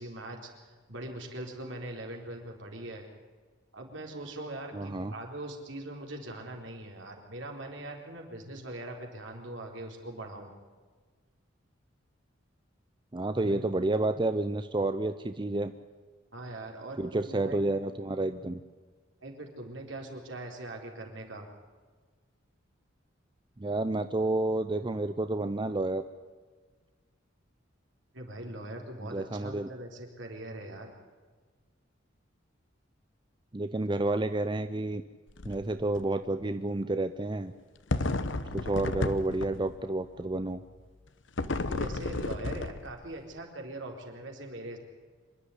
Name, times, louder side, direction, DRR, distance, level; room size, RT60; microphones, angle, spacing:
voice 1, 0.0-3.0 3.7-10.5 13.4-13.6 16.3-17.6 19.2-21.5 28.1-30.9 41.7-44.8, right 1 dB, 70° right, 2 dB, 4.1 m, -41 dB
voice 2, 4.7-5.1 13.1-15.7 17.0-18.6 23.6-26.0 29.0-29.7 33.5-35.0 35.4-37.5 38.5-40.6, right 2 dB, 25° right, 10 dB, 0.6 m, -30 dB
Bumping apples Pouring Apples, 35.3-35.6 36.0-36.1 37.9-39.8 41.4-43.1, left 2 dB, 65° left, 1.0 m, -32 dB
26.0 x 11.5 x 9.9 m, 1.4 s
head